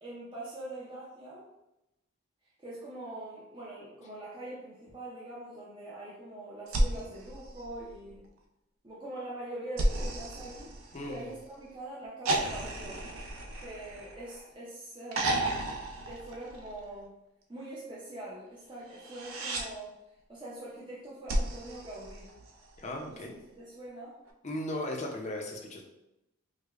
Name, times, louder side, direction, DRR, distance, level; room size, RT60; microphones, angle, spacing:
voice 1, 0.0-1.5 2.6-8.3 8.8-10.8 11.1-13.1 13.6-15.8 16.0-17.1 17.5-19.9 20.3-22.3 23.1-23.2 23.6-24.2, right 1 dB, 20° right, -7 dB, 0.5 m, -43 dB
sound 1, 6.7-8.3 9.8-11.4 12.3-14.5 15.1-16.9 18.9-19.7 21.3-22.8 24.3-24.4, right 1 dB, 75° right, 0.4 m, -33 dB
voice 2, 10.9-11.3 22.8-23.4 24.4-25.8, left 1 dB, 35° left, 0 dB, 0.5 m, -37 dB
4.8 x 2.1 x 2.4 m, 0.90 s
head